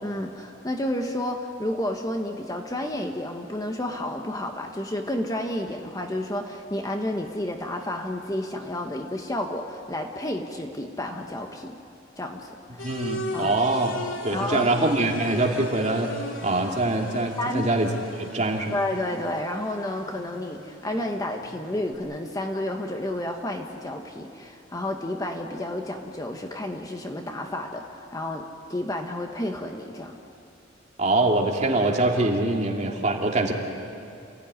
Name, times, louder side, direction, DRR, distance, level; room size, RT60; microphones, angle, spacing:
voice 1, 0.0-11.8 12.2-12.9 13.3-13.6 14.3-14.7 17.4-17.7 18.7-28.4 28.7-30.2, left 1 dB, 20° left, 3 dB, 1.2 m, -31 dB
sound 1, 12.8-21.9, left 2 dB, 85° left, 2.9 m, -39 dB
voice 2, 12.8-14.0 14.2-18.8 31.0-33.5, right 2 dB, 35° right, 0 dB, 2.6 m, -24 dB
28.5 x 16.0 x 9.8 m, 2.6 s
head